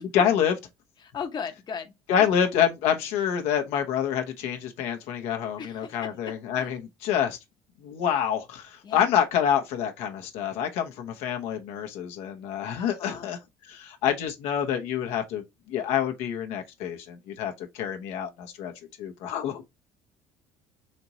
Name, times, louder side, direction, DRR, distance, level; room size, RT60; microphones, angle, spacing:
voice 1, 0.1-0.5 2.1-7.4 7.8-18.7 19.0-19.6, left 9 dB, 75° left, 1.0 m, -27 dB
voice 2, 1.0-1.9 2.2-2.3 5.6-6.1 6.5-6.7 8.8-9.0 12.8-13.3, left 6 dB, 40° left, 1.0 m, -37 dB
4.3 x 2.9 x 4.0 m
supercardioid pair, 80°, 12 cm